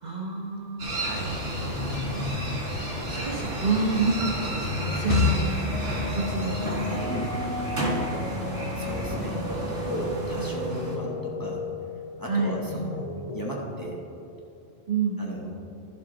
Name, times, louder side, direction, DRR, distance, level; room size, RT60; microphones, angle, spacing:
voice 1, 0.0-1.0 2.0-2.1 3.1-5.4 6.1-7.3 12.3-12.6 14.9-15.2, right 4 dB, 40° right, -2 dB, 1.0 m, -28 dB
sound 1, 0.8-11.0, right 1 dB, 70° right, 2.3 m, -32 dB
voice 2, 1.0-1.3 7.1-7.3 8.7-11.6 12.2-14.0 15.2-15.5, equal, 20° left, -4 dB, 1.3 m, -35 dB
sound 2, 1.1-7.0, left 2 dB, 90° left, 1.4 m, -36 dB
sound 3, 4.6-13.4, left 3 dB, 35° left, 0.6 m, -31 dB
12.0 x 7.2 x 3.9 m, 2.9 s
omnidirectional pair, 1.2 m